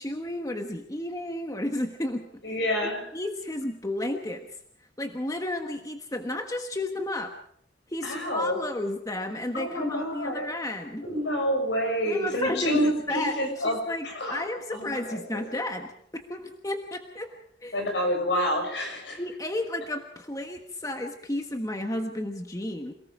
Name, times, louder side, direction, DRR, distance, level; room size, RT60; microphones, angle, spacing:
voice 1, 0.0-2.3 3.1-4.5 5.0-7.3 7.9-11.0 12.1-17.3 17.6-17.8 19.2-22.9, left 1 dB, 20° left, 5 dB, 1.4 m, -32 dB
voice 2, 2.4-3.1 8.0-8.6 9.5-10.5 11.0-15.4 17.7-19.2, equal, 70° left, 3 dB, 6.7 m, -28 dB
28.0 x 19.0 x 5.0 m, 0.66 s
head